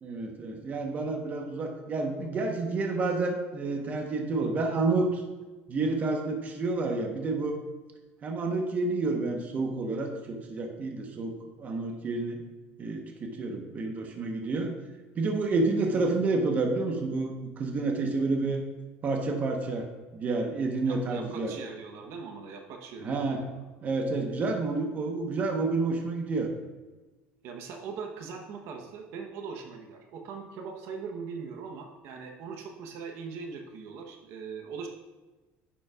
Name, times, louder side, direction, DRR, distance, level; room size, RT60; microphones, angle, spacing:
voice 1, 0.0-5.2 5.7-7.6 8.2-12.4 12.8-14.7 15.1-18.6 19.0-19.9 20.1-21.5 23.0-23.5 23.8-26.5, right 3 dB, 30° right, 3 dB, 1.0 m, -29 dB
voice 2, 20.8-23.5 27.4-34.9, right 5 dB, 60° right, 3 dB, 0.9 m, -41 dB
10.0 x 7.1 x 2.4 m, 1.2 s
cardioid pair, 140°, 5 cm